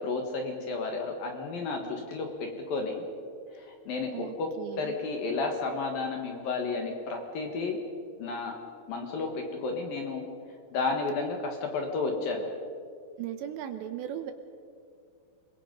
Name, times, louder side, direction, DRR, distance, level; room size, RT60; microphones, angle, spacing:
voice 1, 0.0-3.0 3.5-4.5 4.8-7.8 8.2-8.6 8.9-10.2 10.7-12.5, left 3 dB, 60° left, 3 dB, 2.8 m, -32 dB
voice 2, 4.1-5.0 13.2-14.3, right 10 dB, 75° right, 7 dB, 2.9 m, -37 dB
29.5 x 21.5 x 5.3 m, 2.3 s
omnidirectional pair, 5.7 m